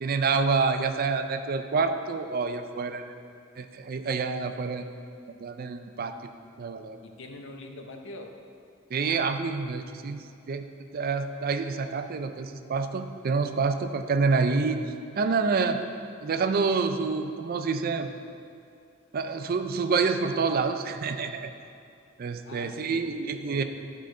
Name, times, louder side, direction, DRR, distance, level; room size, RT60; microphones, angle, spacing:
voice 1, 0.0-3.0 3.6-4.8 5.4-6.2 6.6-7.0 8.9-10.6 10.9-14.8 15.2-15.8 16.2-18.1 19.1-21.5 22.2-23.6, right 4 dB, 50° right, 8 dB, 0.4 m, -27 dB
voice 2, 7.0-8.4 22.4-23.1 23.4-23.6, left 2 dB, 65° left, 3 dB, 0.8 m, -43 dB
11.5 x 5.1 x 3.8 m, 2.5 s
head